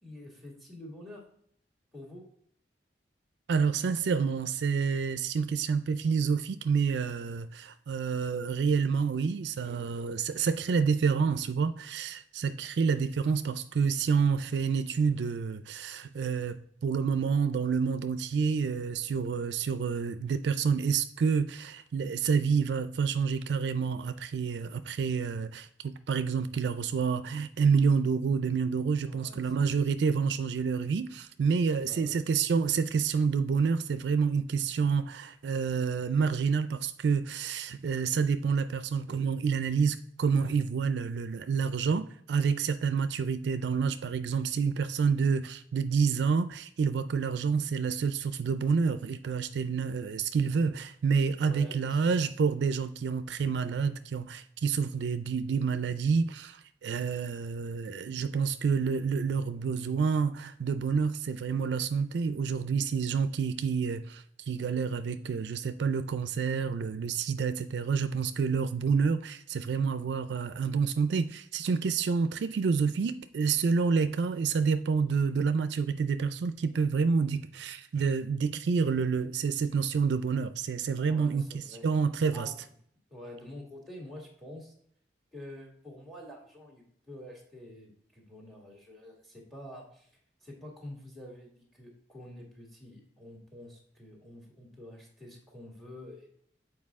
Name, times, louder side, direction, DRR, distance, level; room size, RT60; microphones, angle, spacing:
voice 1, 0.0-1.2 1.9-2.3 29.0-29.7 31.4-32.2 51.4-52.1 81.1-81.9 82.3-82.6 83.1-84.7 85.3-90.1 90.4-96.3, left 1 dB, ahead, 1.8 m, -48 dB
voice 2, 3.5-82.5, right 5 dB, 75° right, 0.4 m, -28 dB
7.5 x 4.7 x 3.5 m
head